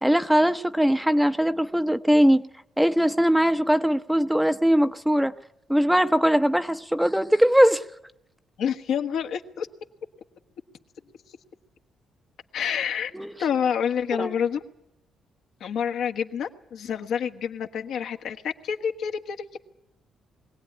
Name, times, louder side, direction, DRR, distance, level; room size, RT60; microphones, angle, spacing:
voice 1, 0.0-2.4 2.8-5.3 5.7-7.8 13.1-13.3 14.2-14.3, equal, 5° right, 0.8 m, -20 dB
voice 2, 8.6-9.7 12.5-13.1 13.4-14.6 15.6-19.6, left 8 dB, 75° left, 1.4 m, -28 dB
22.0 x 17.0 x 9.8 m
cardioid pair, 90°, 0 cm